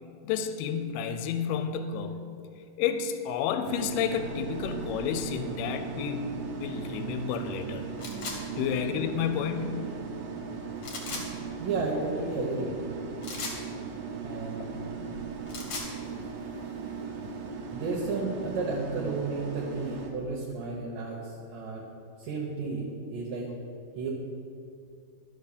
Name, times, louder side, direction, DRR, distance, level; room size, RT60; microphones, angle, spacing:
voice 1, 0.2-2.2 2.8-6.3 6.6-7.9 8.6-9.8, left 7 dB, 85° left, 9 dB, 2.6 m, -30 dB
sound 1, 3.6-20.1, right 5 dB, 90° right, 1.4 m, -37 dB
sound 2, 8.0-8.4 10.8-11.3 13.2-13.6 15.3-15.9, left 3 dB, 55° left, 2.4 m, -36 dB
voice 2, 11.6-12.8 14.2-14.8 17.2-17.4 17.7-21.8 22.2-22.9 23.1-23.5 24.0-24.1, right 3 dB, 70° right, -3 dB, 2.5 m, -32 dB
12.0 x 5.7 x 6.7 m, 2.4 s
omnidirectional pair, 4.5 m